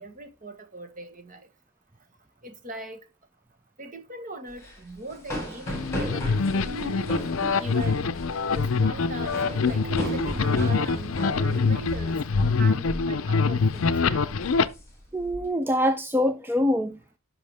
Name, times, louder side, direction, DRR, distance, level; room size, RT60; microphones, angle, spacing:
voice 1, 0.0-1.5 2.4-3.0 3.8-6.8 7.6-8.1 8.5-14.4, right 2 dB, 40° right, 1.2 m, -40 dB
sound 1, 4.5-12.6 12.8-13.1 13.5-13.8 14.3-15.4, equal, 10° left, 4.0 m, -36 dB
sound 2, 5.7-14.6, left 4 dB, 70° left, 0.5 m, -25 dB
sound 3, 6.7-7.9 9.2-11.4, right 3 dB, 75° right, 1.9 m, -40 dB
voice 2, 15.1-17.2, left 1 dB, 10° right, 0.3 m, -25 dB
10.5 x 5.7 x 3.4 m
head